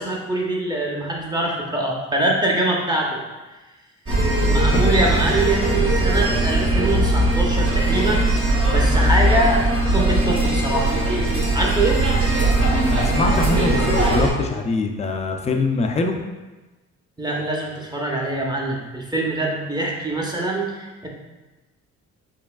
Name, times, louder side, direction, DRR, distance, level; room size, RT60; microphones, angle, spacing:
voice 1, 0.0-3.2 4.4-8.3 8.7-11.0 11.5-12.0 17.2-21.1, right 2 dB, 15° right, -2 dB, 0.8 m, -24 dB
sound 1, 4.1-14.3, right 1 dB, 45° right, 1.2 m, -19 dB
voice 2, 12.9-16.2, left 3 dB, 20° left, 4 dB, 0.4 m, -23 dB
4.8 x 3.2 x 2.3 m, 1.1 s
cardioid pair, 90°, 30 cm